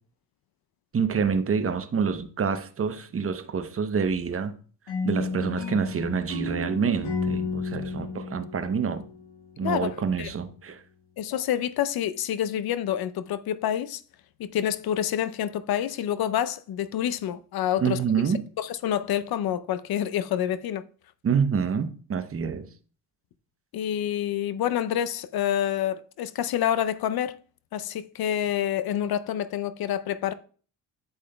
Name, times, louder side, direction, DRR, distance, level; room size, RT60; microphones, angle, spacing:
voice 1, 0.9-4.5 5.0-9.0 9.6-10.8 17.8-18.4 21.2-22.7, right 6 dB, 30° right, 0.8 m, -27 dB
sound 1, 4.9-9.8, left 3 dB, 80° left, 1.8 m, -32 dB
voice 2, 9.6-10.3 11.2-14.0 14.4-18.0 18.6-20.8 23.7-27.4 27.7-30.3, left 10 dB, 60° left, 0.6 m, -27 dB
8.3 x 7.1 x 2.2 m
supercardioid pair, 55°, 42 cm